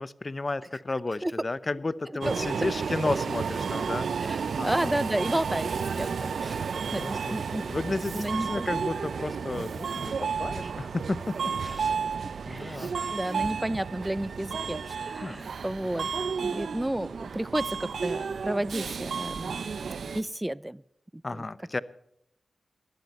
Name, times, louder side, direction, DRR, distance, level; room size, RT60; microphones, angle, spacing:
voice 1, 0.0-4.1 4.6-4.9 6.8-11.9 12.5-12.9 15.2-15.4 21.2-21.8, left 2 dB, 40° left, 17 dB, 0.8 m, -33 dB
Subway metro underground, 2.2-20.2, right 6 dB, 80° right, 0.7 m, -32 dB
voice 2, 4.3-6.6 6.9-7.7 8.1-8.7 12.5-16.1 16.4-20.8 21.1-21.4, right 1 dB, 15° right, 21 dB, 0.6 m, -32 dB
17.0 x 12.0 x 4.3 m, 0.76 s
cardioid pair, 45°, 0 cm